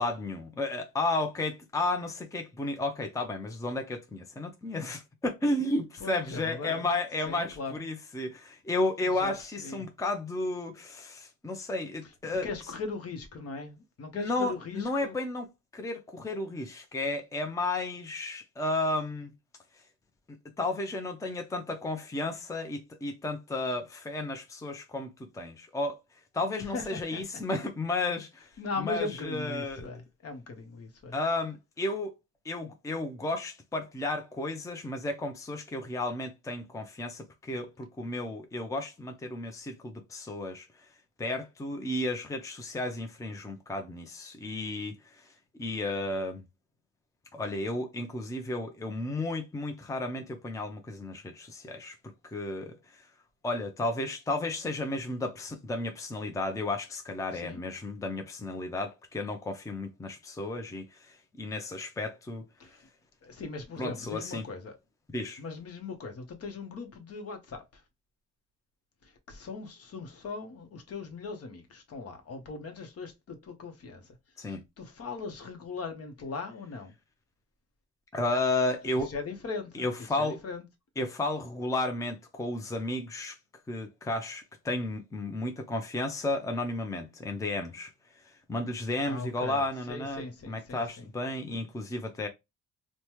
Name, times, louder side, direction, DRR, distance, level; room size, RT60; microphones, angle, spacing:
voice 1, 0.0-12.5 14.1-19.3 20.3-26.0 26.3-28.5 28.8-29.9 31.1-32.1 32.4-40.7 41.2-45.2 45.6-46.4 47.3-53.0 53.4-62.4 63.8-64.5 65.1-65.4 74.4-74.6 78.1-79.1 79.7-80.4 81.0-83.4 83.7-87.9 88.5-92.3, left 2 dB, 10° left, 0.5 m, -33 dB
voice 2, 6.0-6.9 7.3-7.7 9.2-9.3 9.6-9.8 12.4-15.1 26.7-27.2 28.6-31.1 57.4-57.6 62.6-62.7 63.2-64.7 65.4-67.6 69.3-73.1 73.5-74.0 74.8-76.9 79.1-79.8 80.2-80.6 89.1-89.6 89.9-90.8, left 4 dB, 50° left, 0.9 m, -39 dB
3.2 x 2.1 x 2.9 m
cardioid pair, 90°, 30 cm